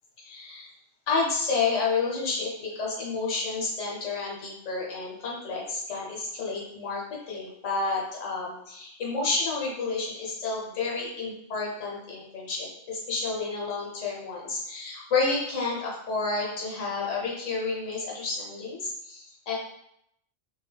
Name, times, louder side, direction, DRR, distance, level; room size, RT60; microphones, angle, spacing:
voice 1, 0.2-0.7 1.1-19.5, left 4 dB, 70° left, -3 dB, 1.2 m, -30 dB
2.6 x 2.3 x 3.2 m, 0.76 s
omnidirectional pair, 1.3 m